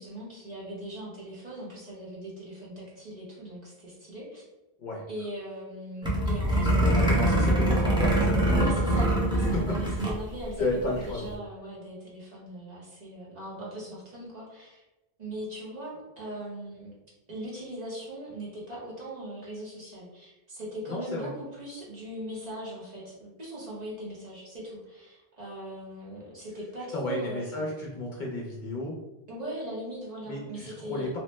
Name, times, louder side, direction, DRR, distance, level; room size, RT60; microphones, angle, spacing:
voice 1, 0.0-4.4 5.1-7.1 8.5-14.8 15.2-16.9 17.3-27.7 29.3-31.2, right 1 dB, 45° right, -6 dB, 0.9 m, -39 dB
sound 1, 6.0-10.2 10.5-10.6 10.8-11.1, right 1 dB, 5° right, 0.4 m, -24 dB
voice 2, 6.6-8.9 9.5-9.8 10.6-11.3 20.9-21.3 26.9-29.0 30.3-31.2, left 2 dB, 55° left, -3 dB, 0.6 m, -32 dB
2.8 x 2.0 x 3.1 m, 1.0 s
omnidirectional pair, 1.1 m